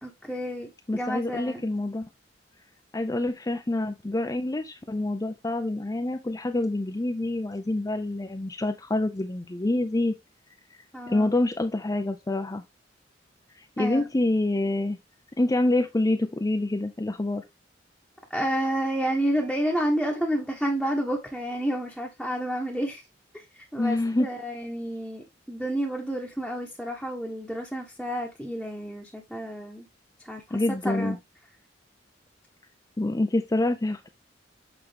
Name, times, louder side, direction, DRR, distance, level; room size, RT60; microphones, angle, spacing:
voice 1, 0.0-1.6 10.9-11.3 13.8-14.1 18.3-23.0 23.3-29.9 30.2-31.2, equal, ahead, 1.1 m, -30 dB
voice 2, 0.9-2.1 2.9-10.1 11.1-12.6 13.6-15.0 15.4-17.4 23.8-24.3 30.5-31.2 33.0-34.1, left 2 dB, 20° left, 0.5 m, -26 dB
7.9 x 4.6 x 3.4 m
head